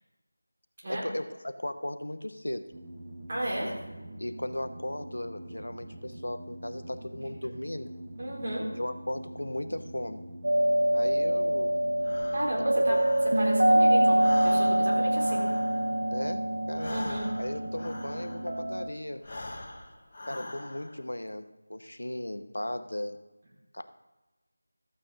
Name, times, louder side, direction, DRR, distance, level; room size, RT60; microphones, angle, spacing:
voice 1, 0.9-2.7 4.2-7.9 8.7-10.3 10.9-11.8 16.1-19.3 20.3-23.2 23.7-24.0, left 1 dB, 85° left, 9 dB, 0.9 m, -36 dB
sound 1, 2.7-18.8, right 1 dB, 20° right, 1.4 m, -44 dB
voice 2, 3.3-3.7 8.2-8.6 12.3-15.4 16.9-17.2, right 1 dB, 40° right, -5 dB, 4.2 m, -33 dB
sound 2, 10.4-18.9, right 1 dB, 70° right, 1.4 m, -25 dB
Breathing, 12.0-13.8 14.1-18.7 19.1-21.1, left 2 dB, 35° left, 1.2 m, -43 dB
13.5 x 8.6 x 3.8 m, 1.1 s
figure-of-eight pair, 170°, 0 cm